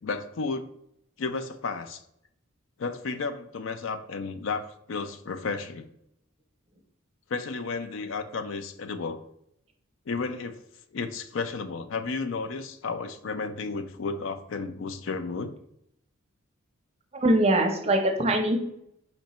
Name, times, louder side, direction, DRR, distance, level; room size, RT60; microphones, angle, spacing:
voice 1, 0.0-0.7 1.2-2.0 2.8-5.8 7.3-9.2 10.1-10.6 10.9-15.5, left 4 dB, 70° left, 10 dB, 0.4 m, -32 dB
voice 2, 17.2-18.6, right 1 dB, 30° right, 3 dB, 0.7 m, -22 dB
4.4 x 2.9 x 4.1 m, 0.76 s
head